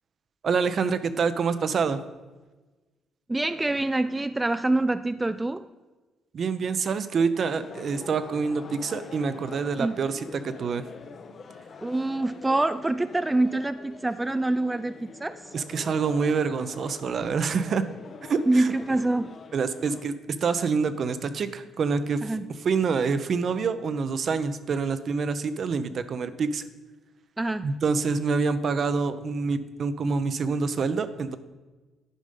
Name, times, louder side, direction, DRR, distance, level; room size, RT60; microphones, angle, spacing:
voice 1, 0.4-2.0 6.3-10.8 15.5-17.8 18.3-18.7 19.5-20.1 20.4-22.2 22.6-26.6 27.6-31.4, right 5 dB, 55° right, 12 dB, 0.6 m, -26 dB
voice 2, 3.3-5.7 9.8-10.0 11.8-15.5 18.5-19.3 22.2-22.5 27.4-27.7, right 2 dB, 15° right, 11 dB, 0.3 m, -26 dB
sound 1, 7.5-20.0, left 5 dB, 55° left, 0.8 m, -45 dB
10.0 x 5.2 x 5.3 m, 1.2 s
supercardioid pair, 70°, 0 cm